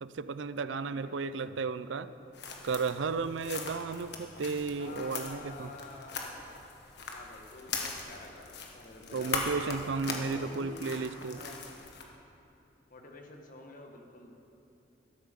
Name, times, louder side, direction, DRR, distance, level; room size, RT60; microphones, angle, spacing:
voice 1, 0.0-2.1 2.6-5.7 9.1-11.4, right 4 dB, 80° right, 14 dB, 0.5 m, -34 dB
voice 2, 0.6-1.2 4.8-6.5 7.1-9.7 10.1-11.7 12.9-14.3, left 2 dB, 45° left, 2 dB, 1.6 m, -49 dB
sound 1, 2.3-12.0, left 4 dB, 65° left, 1.5 m, -40 dB
13.0 x 12.5 x 5.3 m, 2.8 s
head